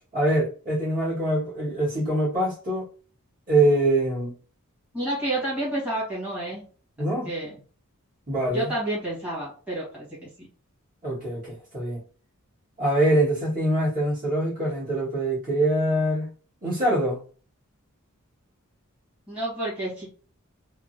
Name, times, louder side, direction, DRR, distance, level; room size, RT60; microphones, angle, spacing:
voice 1, 0.1-2.9 3.5-4.3 7.0-7.3 8.3-8.7 11.0-12.0 12.8-16.3 16.6-17.2, right 1 dB, 40° right, 1.5 m, -24 dB
voice 2, 4.9-6.6 7.2-7.5 8.5-10.1 10.4-10.5 19.3-20.1, right 1 dB, 5° right, 1.4 m, -29 dB
3.6 x 2.1 x 2.6 m
head